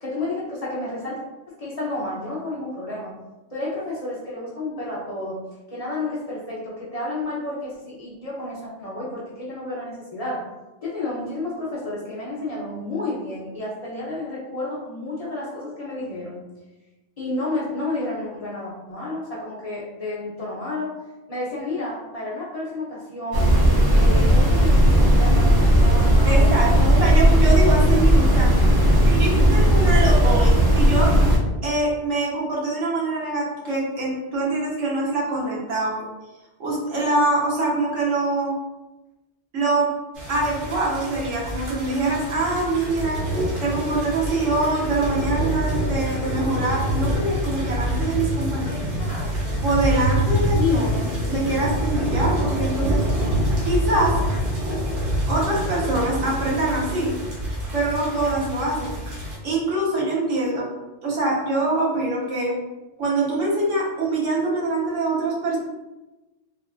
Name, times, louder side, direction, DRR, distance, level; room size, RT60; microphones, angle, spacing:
voice 1, 0.0-1.2 1.5-3.1 3.5-5.4 5.7-10.4 10.8-16.4 17.2-20.9 21.3-23.5 23.9-26.7 48.7-49.6 50.5-51.8, left 2 dB, 40° left, -7 dB, 0.6 m, -31 dB
sound 1, 23.3-31.4, equal, 35° right, 0.4 m, -16 dB
voice 2, 26.2-28.7 29.0-31.2 31.6-36.1 36.6-38.6 39.5-39.9 40.3-43.3 43.6-48.8 49.6-53.0 53.6-54.2 55.3-57.1 57.7-59.2 59.4-60.7 61.0-62.6 63.0-65.6, right 2 dB, 85° right, -5 dB, 1.3 m, -24 dB
sound 2, 40.2-59.4, equal, 50° right, 0.9 m, -26 dB
3.5 x 2.3 x 2.3 m, 1.1 s
omnidirectional pair, 1.2 m